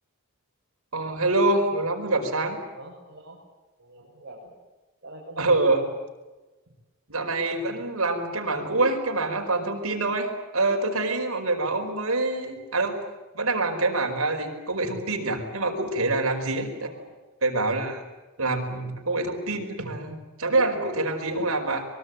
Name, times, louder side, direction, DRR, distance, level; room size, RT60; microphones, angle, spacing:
voice 1, 0.9-2.6 5.4-5.8 7.1-13.0 13.3-16.7 17.4-18.0 18.4-21.9, right 2 dB, 70° right, 3 dB, 5.0 m, -25 dB
voice 2, 2.7-3.4 3.8-4.5 5.0-5.9 16.7-17.1, right 2 dB, 50° right, -5 dB, 6.8 m, -43 dB
24.0 x 22.5 x 9.2 m, 1.2 s
head